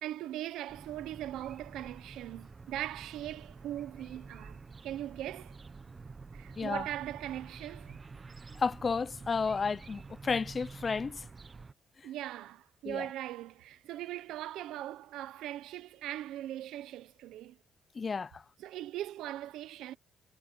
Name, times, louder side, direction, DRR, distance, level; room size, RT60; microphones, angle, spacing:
voice 1, 0.0-5.6 6.3-8.0 12.0-17.6 18.6-20.0, right 13 dB, 90° right, 1.1 m, -40 dB
sound 1, 0.7-11.7, right 4 dB, 30° right, 1.1 m, -49 dB
voice 2, 8.6-11.2 12.8-13.1 17.9-18.4, left 5 dB, 35° left, 0.6 m, -32 dB
cardioid pair, 90°, 0 cm